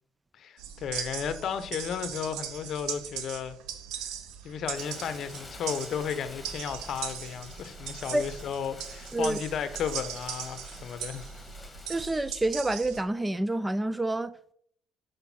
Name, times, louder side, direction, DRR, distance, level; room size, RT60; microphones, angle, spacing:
voice 1, 0.3-3.6 3.9-4.1 4.4-11.3, left 7 dB, 60° left, 0.7 m, -34 dB
sound 1, 0.6-13.0, right 8 dB, 80° right, 0.6 m, -39 dB
Rain, 4.7-12.1, left 2 dB, 15° left, 1.5 m, -48 dB
voice 2, 11.9-14.5, right 2 dB, 15° right, 0.3 m, -28 dB
5.9 x 5.2 x 4.2 m
supercardioid pair, 85°, 0 cm